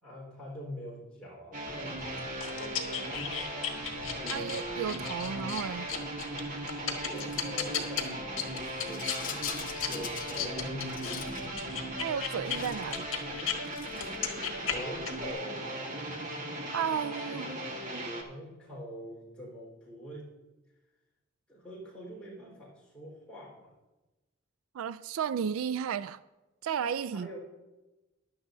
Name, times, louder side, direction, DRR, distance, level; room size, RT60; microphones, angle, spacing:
voice 1, 0.0-3.8 6.8-9.4 9.8-11.7 14.5-16.3 18.2-20.3 21.5-23.7 27.1-27.4, equal, 5° left, 4.3 m, -44 dB
sound 1, 1.5-18.2, right 1 dB, 40° right, 1.5 m, -38 dB
sound 2, 1.7-13.6 13.9-15.3, left 7 dB, 65° left, 1.5 m, -37 dB
voice 2, 4.3-5.9 12.0-13.1 16.7-17.6 24.7-26.2 26.6-27.3, right 7 dB, 80° right, 0.3 m, -33 dB
Rattle, 7.2-7.5 8.6-10.5 10.8-11.5 12.3-13.0 13.6-14.2, left 7 dB, 40° left, 1.0 m, -42 dB
16.5 x 11.0 x 2.7 m
head